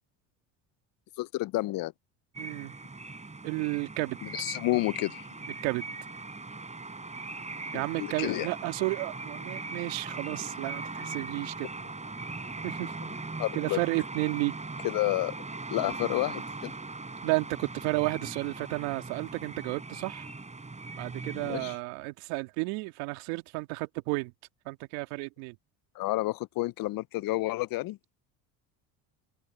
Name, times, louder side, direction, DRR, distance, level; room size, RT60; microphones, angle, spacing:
voice 1, 1.2-1.9 4.3-5.3 7.7-8.5 13.4-13.8 14.8-15.3 15.7-16.7 21.4-21.7 26.0-28.0, left 18 dB, 55° left, 0.6 m, -30 dB
sound 1, 2.3-21.8, right 3 dB, 15° right, 4.3 m, -40 dB
voice 2, 2.4-2.7 3.4-4.2 5.6-5.8 7.7-11.7 12.6-12.9 13.5-14.6 17.2-20.3 21.0-24.3 24.7-25.6, right 25 dB, 80° right, 2.2 m, -32 dB
open air
supercardioid pair, 80°, 41 cm